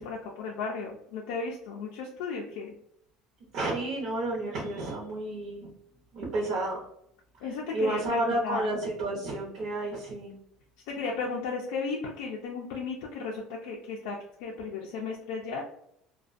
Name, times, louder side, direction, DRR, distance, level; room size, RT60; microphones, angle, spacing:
voice 1, 0.0-2.7 7.4-8.7 10.9-15.6, left 4 dB, 85° left, -1 dB, 0.4 m, -35 dB
voice 2, 3.5-5.7 6.1-6.8 7.7-10.4, right 2 dB, 50° right, -4 dB, 0.7 m, -31 dB
2.4 x 2.1 x 2.4 m, 0.73 s
cardioid pair, 155°, 0 cm